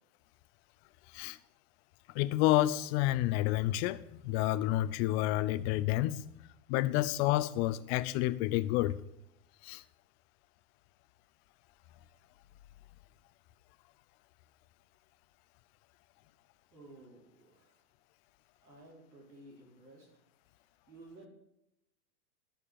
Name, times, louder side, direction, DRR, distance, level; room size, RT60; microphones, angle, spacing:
voice 1, 2.1-6.3 6.7-9.0 9.6-9.8, left 15 dB, 40° left, 0.7 m, -29 dB
voice 2, 16.7-17.8 18.6-20.1 20.9-21.3, right 2 dB, 90° right, 4.6 m, -54 dB
12.0 x 6.8 x 7.0 m
hypercardioid pair, 115°, 49 cm